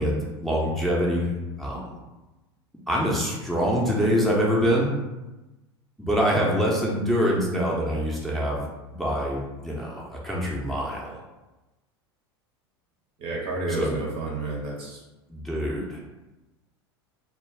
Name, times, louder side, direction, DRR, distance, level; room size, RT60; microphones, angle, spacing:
voice 1, 0.0-1.3 1.6-2.0 2.9-4.9 6.0-8.6 8.9-11.2 13.7-14.0 15.3-16.0, equal, ahead, -4 dB, 0.6 m, -25 dB
voice 2, 13.2-15.0, right 2 dB, 40° right, -1 dB, 0.6 m, -30 dB
2.2 x 2.2 x 3.3 m, 1.1 s
hypercardioid pair, 85°, 14 cm